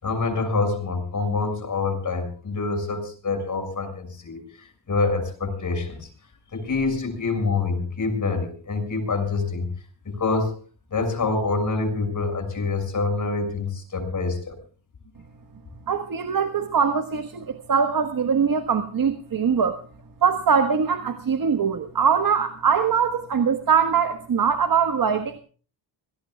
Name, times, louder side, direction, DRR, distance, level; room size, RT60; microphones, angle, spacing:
voice 1, 0.0-6.1 6.5-9.7 10.0-10.5 10.9-14.6, left 3 dB, 45° left, 6 dB, 6.4 m, -26 dB
voice 2, 15.9-19.8 20.2-25.4, right 6 dB, 50° right, 7 dB, 1.5 m, -22 dB
26.5 x 17.5 x 2.4 m, 0.39 s
cardioid pair, 110°, 43 cm